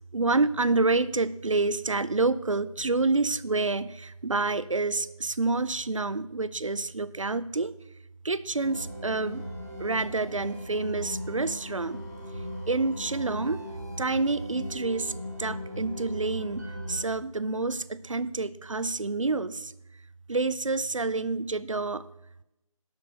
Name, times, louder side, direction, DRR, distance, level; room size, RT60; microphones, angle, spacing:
voice 1, 0.1-7.7 8.2-9.4 9.8-12.0 12.7-13.6 14.0-19.7 20.3-22.0, right 3 dB, 60° right, 17 dB, 0.5 m, -28 dB
sound 1, 8.6-17.0, equal, 30° right, 2.0 m, -38 dB
12.0 x 5.2 x 6.3 m, 0.90 s
figure-of-eight pair, 170°, 18 cm